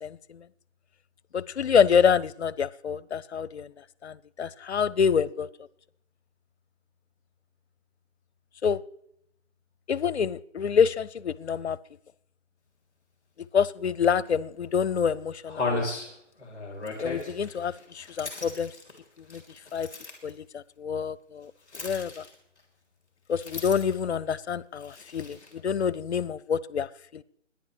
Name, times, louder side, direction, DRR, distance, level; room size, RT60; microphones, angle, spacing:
voice 1, 0.0-0.4 1.3-3.7 4.0-5.5 8.6-8.8 9.9-11.8 13.4-16.0 17.0-18.7 19.2-19.4 19.7-19.9 20.2-22.2 23.3-27.2, left 7 dB, 60° left, 21 dB, 0.6 m, -27 dB
sound 1, 14.3-14.4 14.9-15.0 15.5-20.3 21.7-22.6 23.3-24.1 24.8-25.6, left 2 dB, 5° right, 2.4 m, -36 dB
24.5 x 10.5 x 3.2 m, 0.72 s
hypercardioid pair, 175°, 38 cm